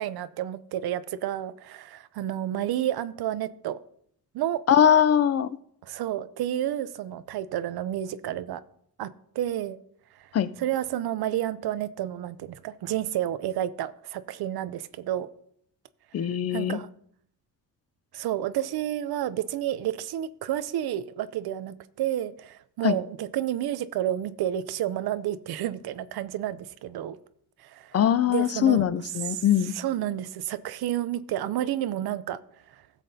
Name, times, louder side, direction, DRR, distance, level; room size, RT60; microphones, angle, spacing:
voice 1, 0.0-3.8 4.3-4.6 5.8-8.6 9.0-9.8 10.1-10.3 10.6-15.3 16.2-16.9 18.1-27.2 27.6-27.9 28.3-28.9 29.3-32.4, right 12 dB, 85° right, 0.6 m, -30 dB
voice 2, 4.7-5.5 10.3-10.5 16.1-16.8 22.8-23.0 27.9-29.8, left 9 dB, 40° left, 0.4 m, -21 dB
16.5 x 7.5 x 2.7 m
wide cardioid pair, 145°, 37 cm